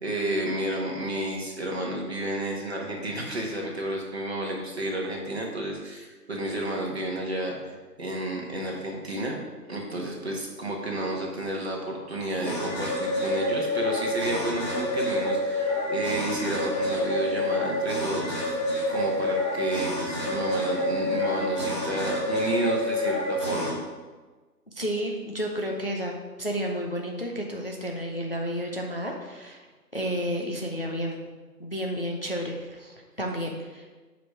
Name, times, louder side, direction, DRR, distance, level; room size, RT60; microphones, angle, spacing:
voice 1, 0.0-9.4 9.7-18.6 18.9-23.8, right 1 dB, 40° right, -1 dB, 1.5 m, -31 dB
sound 1, 12.4-23.7, left 1 dB, 15° left, 1.7 m, -28 dB
voice 2, 24.7-26.1 26.4-29.6 29.9-31.2 31.6-33.9, equal, 35° left, 1 dB, 0.6 m, -31 dB
8.2 x 5.0 x 4.8 m, 1.3 s
figure-of-eight pair, 155°, 49 cm